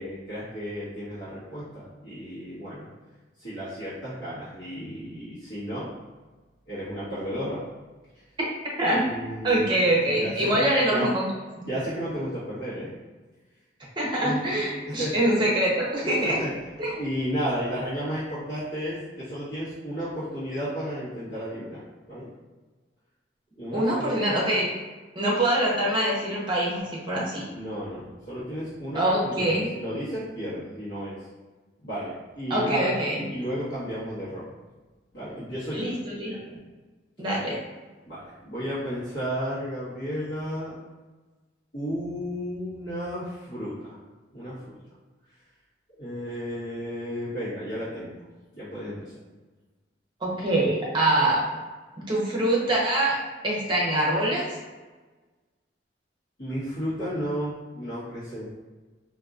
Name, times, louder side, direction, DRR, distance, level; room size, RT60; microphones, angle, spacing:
voice 1, 0.0-2.9 3.4-5.9 6.7-7.6 8.9-9.7 10.1-11.1 11.6-12.9 14.2-14.4 14.9-15.1 16.0-16.5 17.0-21.8 22.1-22.3 23.6-24.1 27.5-31.2 31.8-32.9 33.3-34.4 35.1-35.9 38.1-40.7 41.7-44.0 44.3-44.8 46.0-48.2 48.5-49.1 56.4-58.4, equal, 65° left, -14 dB, 1.2 m, -33 dB
voice 2, 9.4-11.2 14.0-16.4 16.8-17.0 23.7-24.7 25.1-27.4 28.9-29.7 32.5-33.2 35.7-36.4 37.2-37.6 50.2-51.4 52.1-54.6, right 1 dB, 25° right, -4 dB, 0.8 m, -24 dB
3.9 x 2.6 x 2.5 m, 1.3 s
head